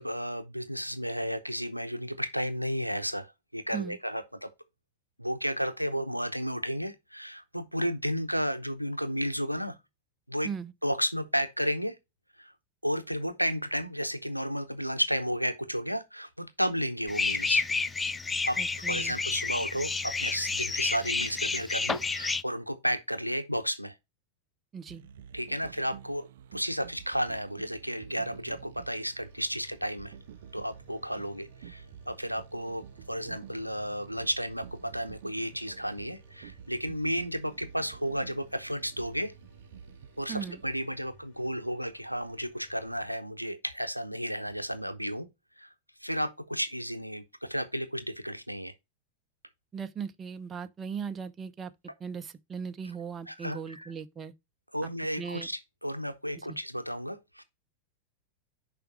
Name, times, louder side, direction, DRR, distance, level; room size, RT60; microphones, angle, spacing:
voice 1, 0.0-4.5 5.2-9.8 10.3-10.5 10.8-12.0 12.4-12.5 12.8-17.6 18.4-18.6 18.9-24.0 25.3-30.1 30.5-39.3 40.2-45.3 45.6-45.7 46.0-48.7 53.3-53.9 54.7-57.4, equal, 90° right, 0.7 m, -33 dB
sound 1, 17.1-22.4, left 4 dB, 15° left, 0.4 m, -30 dB
voice 2, 18.6-19.2 24.7-25.0 40.3-40.6 49.7-51.7 52.0-54.3 55.2-55.5 56.5-56.6, right 6 dB, 20° right, 0.7 m, -38 dB
sound 2, 24.9-40.8, right 8 dB, 55° right, 0.4 m, -50 dB
sound 3, 29.2-43.1, left 1 dB, 55° left, 4.2 m, -61 dB
6.7 x 5.0 x 4.7 m
figure-of-eight pair, 90°, 0 cm